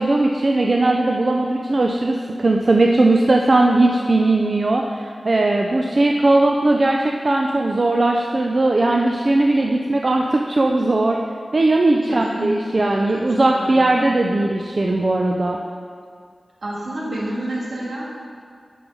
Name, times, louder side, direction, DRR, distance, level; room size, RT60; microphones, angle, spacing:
voice 1, 0.0-11.2 11.5-15.6, right 2 dB, 45° right, 1 dB, 0.4 m, -18 dB
voice 2, 12.0-13.9 16.6-18.1, right 1 dB, 70° right, -6 dB, 1.9 m, -29 dB
6.8 x 4.6 x 5.4 m, 2.1 s
wide cardioid pair, 105°, 0 cm